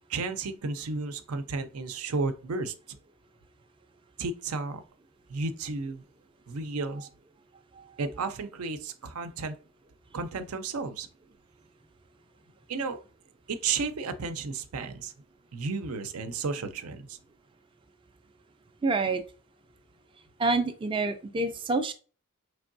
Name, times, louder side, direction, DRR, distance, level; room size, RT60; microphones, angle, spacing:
voice 1, 0.1-2.7 4.2-4.8 5.3-6.0 6.5-7.1 8.0-9.6 10.1-11.1 12.7-13.0 13.5-15.1 15.5-17.2, right 4 dB, 85° right, 9 dB, 0.5 m, -33 dB
voice 2, 18.8-19.2 20.4-21.9, right 3 dB, 25° right, 7 dB, 0.3 m, -27 dB
4.4 x 3.3 x 2.6 m, 0.36 s
head